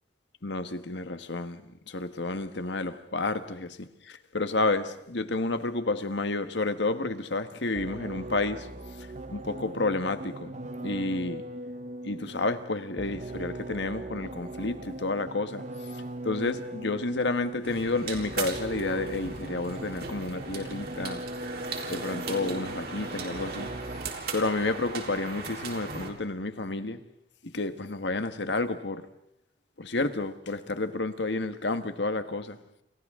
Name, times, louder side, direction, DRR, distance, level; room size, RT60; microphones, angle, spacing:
voice 1, 0.4-8.7 9.0-10.5 10.8-11.4 12.0-15.6 16.2-21.2 21.9-23.7 24.3-27.0 27.4-29.1 29.8-32.6, left 2 dB, 70° left, 1.5 m, -30 dB
sound 1, 7.8-24.4, right 1 dB, 40° right, 0.9 m, -40 dB
sound 2, 17.6-26.1, right 4 dB, 55° right, 3.8 m, -38 dB
30.0 x 28.0 x 3.7 m
head